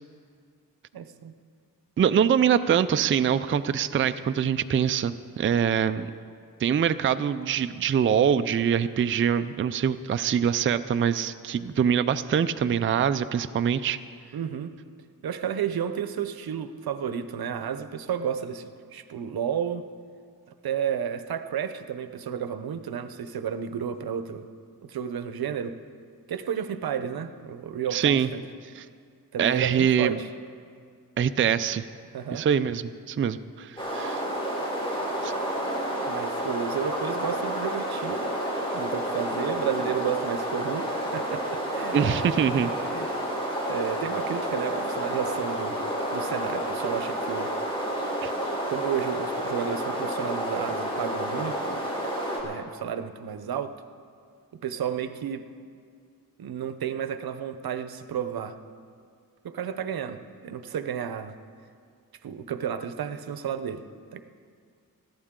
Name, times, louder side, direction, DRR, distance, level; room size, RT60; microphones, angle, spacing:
voice 1, 0.9-1.3 14.3-14.7 15.2-19.9 20.6-24.5 24.8-25.8 26.3-28.4 29.3-30.3 32.1-32.4 36.1-38.3 38.7-42.0 42.9-43.1 43.7-45.8 46.1-47.5 48.7-51.8 52.4-53.7 54.6-55.4 56.4-58.6 59.4-61.4 62.2-63.8 64.1-64.2, right 8 dB, 80° right, 10 dB, 0.8 m, -32 dB
voice 2, 2.0-6.1 6.6-14.0 27.9-28.3 28.8-28.9 29.4-30.2 31.2-31.8 32.3-34.2 35.2-35.3 41.9-42.7 48.2-48.3, right 8 dB, 35° right, 11 dB, 0.4 m, -24 dB
sound 1, 33.8-52.4, equal, 15° left, 3.5 m, -30 dB
20.5 x 14.5 x 3.7 m, 2.2 s
wide cardioid pair, 130°, 36 cm